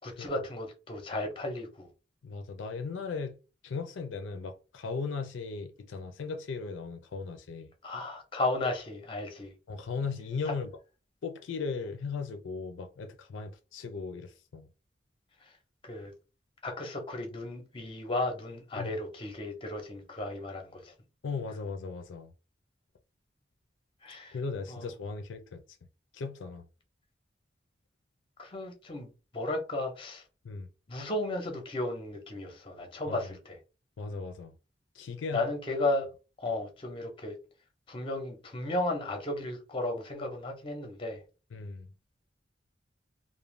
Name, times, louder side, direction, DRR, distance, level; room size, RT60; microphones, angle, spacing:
voice 1, 0.0-1.9 7.8-9.5 10.5-10.6 15.4-15.5 15.8-16.1 16.6-20.9 24.0-24.4 24.7-24.9 28.4-30.2 30.9-33.6 35.3-36.1 36.4-37.4 37.9-41.2, left 2 dB, 25° left, 0.6 m, -34 dB
voice 2, 2.2-3.4 3.6-7.7 9.7-10.7 11.2-14.7 18.8-19.0 21.2-22.3 24.3-25.6 26.1-26.7 30.4-30.7 33.1-33.2 34.0-34.6 34.9-35.5 41.5-41.9, left 4 dB, 80° left, 0.4 m, -37 dB
2.4 x 2.1 x 3.1 m
head